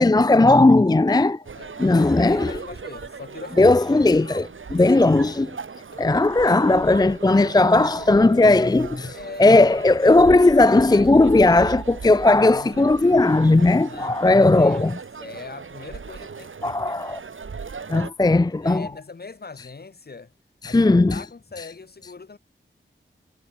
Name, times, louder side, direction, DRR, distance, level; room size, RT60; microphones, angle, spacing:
voice 1, 0.0-1.4 1.8-2.6 3.6-5.5 6.0-15.0 16.6-17.2 17.9-18.9 20.6-21.2, left 2 dB, 20° left, 0.5 m, -17 dB
voice 2, 1.1-4.2 5.9-6.1 9.1-9.7 12.3-13.6 13.8-16.8 18.2-20.3 20.7-22.4, left 4 dB, 50° left, 1.8 m, -41 dB
sound 1, 1.4-18.1, right 5 dB, 75° right, 2.3 m, -38 dB
wide cardioid pair, 95°, 20 cm